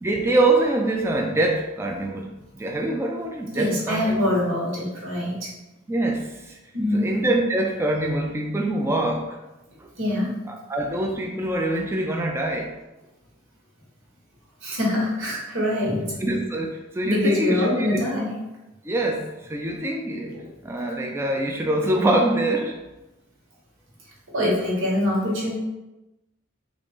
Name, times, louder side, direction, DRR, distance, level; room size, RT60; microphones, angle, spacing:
voice 1, 0.0-4.3 5.9-6.6 6.9-9.4 9.8-9.9 10.5-12.7 16.2-18.1 18.8-20.3 20.6-22.7, right 1 dB, 15° right, 1 dB, 0.3 m, -24 dB
voice 2, 3.5-5.5 6.7-7.1 10.0-10.4 14.6-16.2 17.0-18.3 20.3-20.5 24.3-25.6, left 1 dB, 85° right, -4 dB, 1.3 m, -24 dB
3.7 x 2.5 x 3.5 m, 1.0 s
head